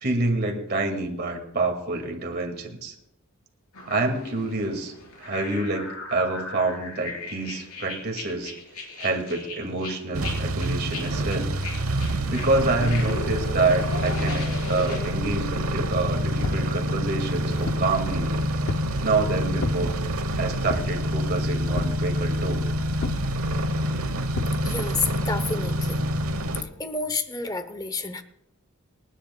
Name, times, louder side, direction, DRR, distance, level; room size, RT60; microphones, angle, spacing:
voice 1, 0.0-2.9 3.9-8.5 9.0-11.5 12.3-18.3 19.0-20.0 20.4-22.7, right 2 dB, 45° right, 3 dB, 2.1 m, -27 dB
sound 1, 3.7-15.0, left 2 dB, 80° left, 4.6 m, -37 dB
sound 2, 10.1-26.6, equal, 70° right, 1.0 m, -27 dB
sound 3, 16.4-16.7 17.3-17.9 18.7-19.0 19.6-19.8 20.7-21.0 21.8-22.0 23.0-23.3 24.4-24.6, left 3 dB, 55° left, 0.6 m, -32 dB
voice 2, 24.6-26.0 26.8-28.2, left 3 dB, 15° left, 10 dB, 0.9 m, -29 dB
28.5 x 10.0 x 2.3 m, 0.83 s
head